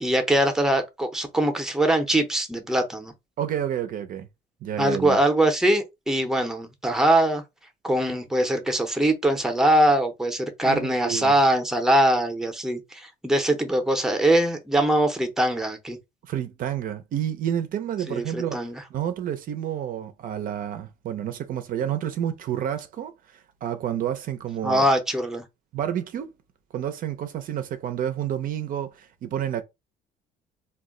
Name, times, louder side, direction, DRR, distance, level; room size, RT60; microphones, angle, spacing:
voice 1, 0.0-3.1 4.8-7.4 7.8-16.0 18.1-18.8 24.6-25.4, right 1 dB, 5° right, 0.6 m, -22 dB
voice 2, 3.4-4.3 4.6-5.2 10.6-11.3 16.3-24.8 25.7-26.3 26.7-29.6, right 10 dB, 55° right, 0.4 m, -30 dB
2.2 x 2.1 x 3.6 m
cardioid pair, 110°, 17 cm